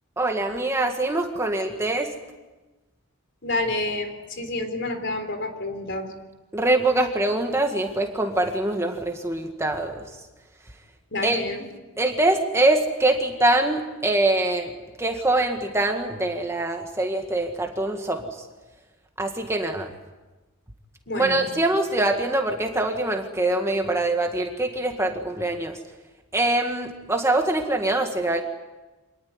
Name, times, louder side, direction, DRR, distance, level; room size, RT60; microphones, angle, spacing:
voice 1, 0.2-2.1 6.5-10.0 11.2-11.4 12.0-14.7 15.0-18.2 19.2-19.9 21.1-25.8 26.3-28.4, right 2 dB, 10° right, 4 dB, 1.9 m, -24 dB
voice 2, 3.4-6.1 11.1-11.6 21.1-21.5, left 2 dB, 55° left, 7 dB, 3.9 m, -29 dB
26.5 x 20.0 x 9.7 m, 1.1 s
head